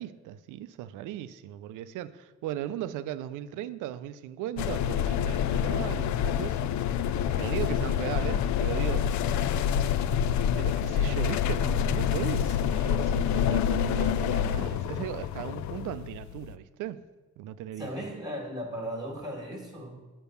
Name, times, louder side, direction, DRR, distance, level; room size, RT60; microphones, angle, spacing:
voice 1, 0.0-6.7 7.4-9.1 10.6-17.0 17.4-17.9, right 12 dB, 85° right, 0.5 m, -37 dB
sound 1, 4.6-16.6, left 9 dB, 70° left, 0.4 m, -27 dB
voice 2, 17.8-20.0, equal, 10° right, 1.6 m, -36 dB
7.1 x 5.2 x 6.8 m
cardioid pair, 90°, 30 cm